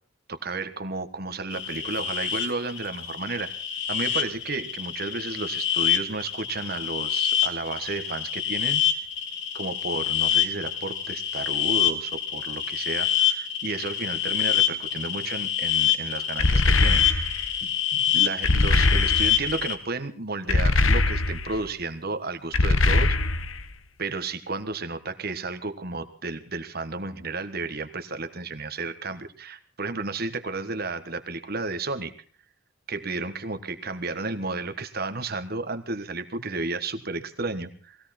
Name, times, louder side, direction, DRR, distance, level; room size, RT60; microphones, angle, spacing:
voice 1, 0.3-3.5 3.9-8.8 9.5-17.1 17.6-23.1 24.0-32.1 32.9-38.0, right 3 dB, 50° right, 10 dB, 1.5 m, -32 dB
sound 1, 1.5-19.8, left 10 dB, 60° left, 2.1 m, -26 dB
sound 2, 16.4-17.5 18.4-19.5 20.5-21.6 22.5-23.6, left 2 dB, 85° left, 1.2 m, -22 dB
20.0 x 16.5 x 4.4 m, 0.43 s
head